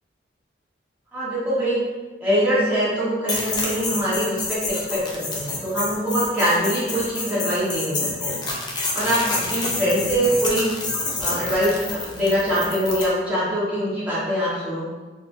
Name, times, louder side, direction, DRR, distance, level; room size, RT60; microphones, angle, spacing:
voice 1, 1.1-1.8 2.2-8.4 8.9-10.7 11.2-14.9, equal, 10° right, -11 dB, 1.2 m, -23 dB
sound 1, 3.3-13.1, left 3 dB, 25° left, 0.4 m, -28 dB
3.9 x 2.6 x 2.6 m, 1.3 s
head